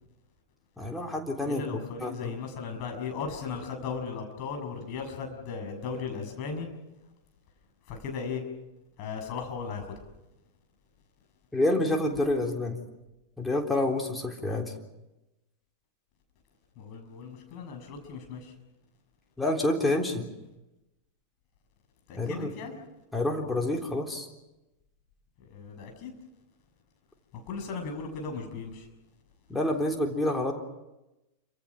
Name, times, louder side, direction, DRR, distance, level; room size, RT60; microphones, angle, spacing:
voice 1, 0.8-1.6 2.0-2.3 11.5-12.8 13.4-14.7 19.4-20.3 22.2-22.5 23.1-24.3 29.5-30.5, left 1 dB, 5° left, 1 dB, 3.6 m, -28 dB
voice 2, 1.4-6.7 7.9-8.4 9.0-10.0 16.8-18.5 22.1-22.8 25.4-26.1 27.3-28.9, left 5 dB, 40° left, 4 dB, 6.6 m, -37 dB
28.0 x 25.5 x 6.1 m, 0.97 s
figure-of-eight pair, 90°, 0 cm